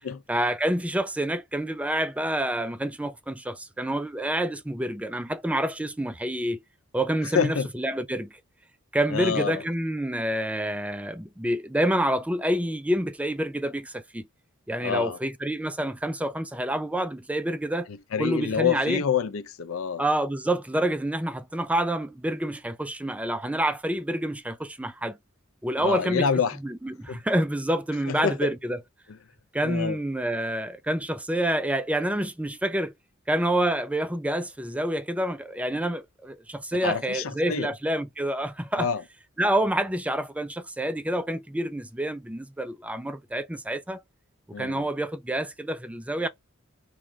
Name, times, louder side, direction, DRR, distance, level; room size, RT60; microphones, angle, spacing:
voice 1, 0.3-6.6 6.9-8.4 8.9-14.3 14.7-17.9 18.2-19.0 20.0-25.2 25.6-26.3 26.6-28.8 29.5-32.9 33.3-38.9 39.4-44.0 44.6-46.3, right 1 dB, 5° right, 0.4 m, -28 dB
voice 2, 7.2-7.7 9.1-9.6 14.8-15.2 17.9-20.0 25.8-26.6 27.1-27.2 28.1-28.5 29.6-30.0 36.8-37.7 38.8-39.0 44.5-44.9, left 6 dB, 85° left, 0.5 m, -27 dB
3.6 x 3.1 x 4.5 m
head